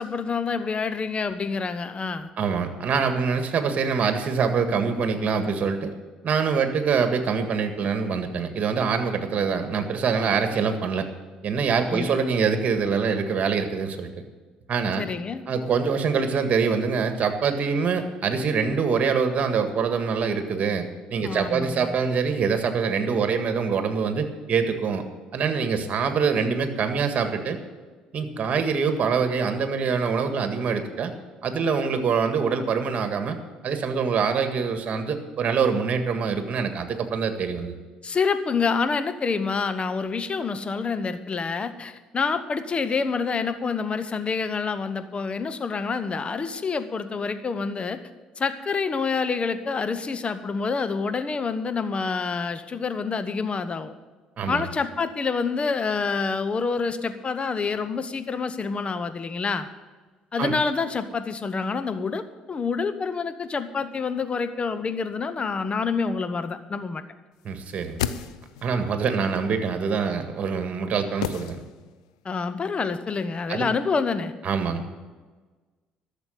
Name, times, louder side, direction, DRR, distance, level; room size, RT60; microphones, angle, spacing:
voice 1, 0.0-2.3 11.9-12.1 15.0-15.4 21.2-21.9 38.0-48.0 48.4-53.9 54.5-59.7 60.3-67.0 72.2-74.3, left 5 dB, 35° left, 11 dB, 1.1 m, -27 dB
voice 2, 2.4-5.9 6.2-11.1 11.4-14.1 14.7-15.1 15.5-25.0 25.3-27.6 28.1-31.1 31.4-33.4 33.6-37.7 54.4-54.7 60.4-60.5 67.4-68.0 68.6-71.6 73.5-73.7 74.4-74.9, right 5 dB, 50° right, 7 dB, 1.8 m, -24 dB
sound 1, 67.6-68.8 71.2-72.1 72.4-72.5, left 10 dB, 85° left, 0.5 m, -32 dB
12.5 x 7.3 x 8.6 m, 1.3 s
hypercardioid pair, 60°, 3 cm